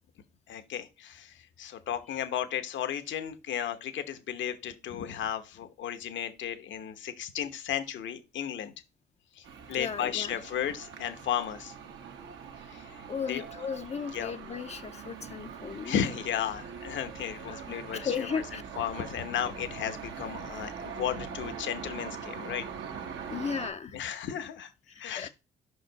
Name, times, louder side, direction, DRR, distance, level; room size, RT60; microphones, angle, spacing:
voice 1, 0.5-8.7 9.3-11.7 12.7-13.4 14.1-14.4 15.8-18.4 18.8-22.7 23.9-25.3, left 9 dB, 70° left, 1.0 m, -34 dB
sound 1, 9.4-23.7, right 6 dB, 75° right, 1.2 m, -42 dB
voice 2, 9.8-10.4 13.1-16.0 17.5-18.6 23.3-24.0 25.2-25.3, left 6 dB, 35° left, 0.5 m, -35 dB
5.5 x 5.0 x 3.9 m
cardioid pair, 90°, 20 cm